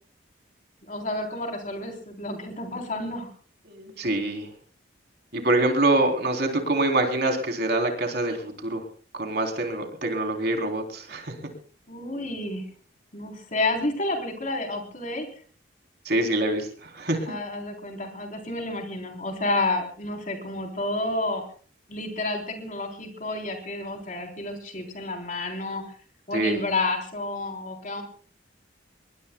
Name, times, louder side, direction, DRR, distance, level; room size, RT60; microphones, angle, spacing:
voice 1, 0.8-3.3 11.9-12.6 13.1-15.3 17.3-21.4 21.9-25.8 26.3-28.0, left 2 dB, 40° left, 3 dB, 3.7 m, -30 dB
voice 2, 3.7-4.5 5.3-8.8 9.1-11.3 16.1-17.3 26.3-26.6, right 2 dB, 55° right, 3 dB, 3.5 m, -25 dB
25.0 x 21.5 x 2.3 m, 0.43 s
head